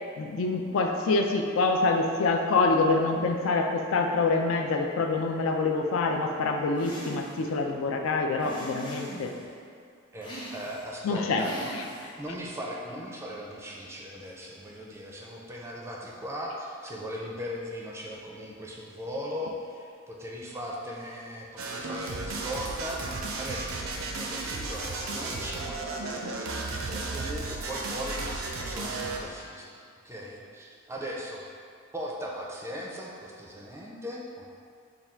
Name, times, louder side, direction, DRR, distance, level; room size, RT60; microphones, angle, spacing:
voice 1, 0.2-9.3 11.0-11.4, left 3 dB, 80° left, 3 dB, 0.4 m, -26 dB
sound 1, 6.8-7.5 8.4-9.5 10.2-10.9 11.4-12.2, equal, 25° left, 0.7 m, -41 dB
voice 2, 10.1-11.7 12.0-26.6 26.9-29.7 30.0-31.4 31.9-34.5, equal, 15° right, -3 dB, 0.4 m, -38 dB
sound 2, 21.6-29.4, right 3 dB, 80° right, 0.5 m, -34 dB
3.5 x 2.3 x 4.3 m, 2.3 s
head